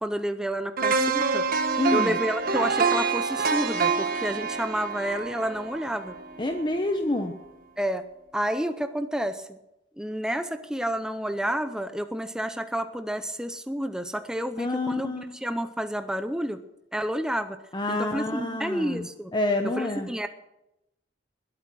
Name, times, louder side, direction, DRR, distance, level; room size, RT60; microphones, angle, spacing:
voice 1, 0.0-1.4 1.9-6.2 7.8-8.0 8.3-9.6 10.0-15.1 15.4-16.6 16.9-17.6 17.9-19.3 19.6-20.3, equal, 5° right, 9 dB, 0.6 m, -30 dB
sound 1, 0.8-6.8 7.2-7.3, right 4 dB, 55° right, 1.4 m, -26 dB
voice 2, 1.8-2.2 6.4-7.3 14.6-15.3 17.7-19.1 19.3-20.1, left 2 dB, 25° left, 5 dB, 1.0 m, -27 dB
20.5 x 8.6 x 6.1 m, 0.90 s
head